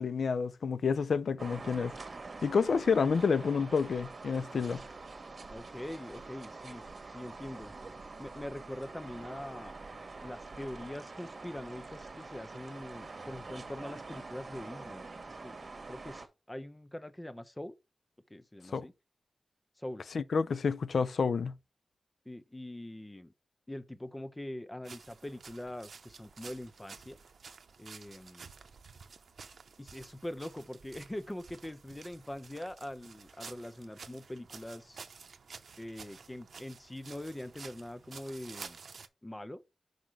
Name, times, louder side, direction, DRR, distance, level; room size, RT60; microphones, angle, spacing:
voice 1, 0.0-1.9 2.4-4.8 18.7-18.9 20.1-21.5, left 5 dB, 85° left, 0.4 m, -29 dB
sound 1, 1.4-16.3, right 3 dB, 50° right, 1.3 m, -46 dB
voice 2, 5.5-6.8 7.1-7.7 8.2-9.8 10.2-17.7 18.3-18.9 19.8-20.0 22.3-23.3 23.7-27.2 27.8-28.5 29.8-35.0 35.8-38.8 39.2-39.6, left 1 dB, 15° left, 0.6 m, -43 dB
sound 2, 24.8-39.1, right 5 dB, 85° right, 0.6 m, -51 dB
5.9 x 5.0 x 4.7 m
wide cardioid pair, 115°, 0 cm